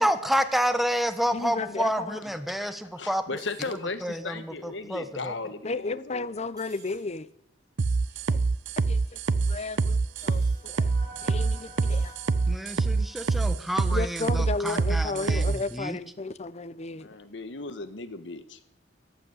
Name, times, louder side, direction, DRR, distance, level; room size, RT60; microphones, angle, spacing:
voice 1, 0.0-3.2 4.0-5.3 12.5-16.0, equal, ahead, 1.1 m, -29 dB
voice 2, 1.3-2.2 5.6-7.3 8.3-8.4 8.8-10.9 11.2-12.1 13.9-17.1, left 3 dB, 35° left, 0.7 m, -34 dB
voice 3, 2.6-6.3 16.9-18.6, left 3 dB, 75° left, 1.4 m, -37 dB
sound 1, 3.4-3.7 6.6-7.0 10.2-10.6 11.9-12.2 13.2-13.5, right 3 dB, 20° right, 4.1 m, -53 dB
sound 2, 7.8-15.6, right 4 dB, 80° right, 0.6 m, -25 dB
sound 3, 9.3-14.6, right 1 dB, 50° right, 2.1 m, -51 dB
14.5 x 10.5 x 8.1 m
head